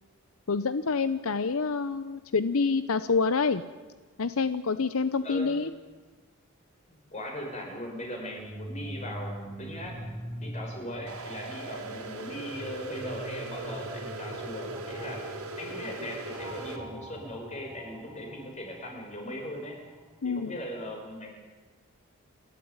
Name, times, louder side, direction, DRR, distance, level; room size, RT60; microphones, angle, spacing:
voice 1, 0.5-3.6 4.2-5.7 20.2-20.5, left 4 dB, 75° left, 13 dB, 0.7 m, -27 dB
voice 2, 5.2-5.6 6.9-10.0 10.4-15.2 15.6-19.8 20.2-21.3, equal, 30° left, 2 dB, 5.8 m, -39 dB
sound 1, 8.2-20.1, equal, 15° right, 4.7 m, -43 dB
sound 2, 11.1-16.8, right 2 dB, 90° right, 3.8 m, -40 dB
29.0 x 12.5 x 9.6 m, 1.3 s
head